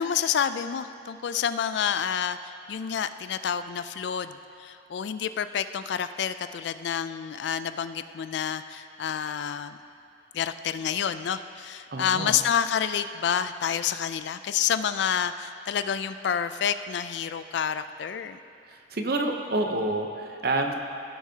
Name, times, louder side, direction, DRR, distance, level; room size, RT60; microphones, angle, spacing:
voice 1, 0.0-2.4 2.7-9.8 10.3-18.4, left 8 dB, 65° left, 12 dB, 0.3 m, -28 dB
voice 2, 11.9-12.4 18.7-20.7, right 2 dB, 55° right, 4 dB, 0.7 m, -28 dB
16.0 x 7.1 x 2.8 m, 2.6 s
head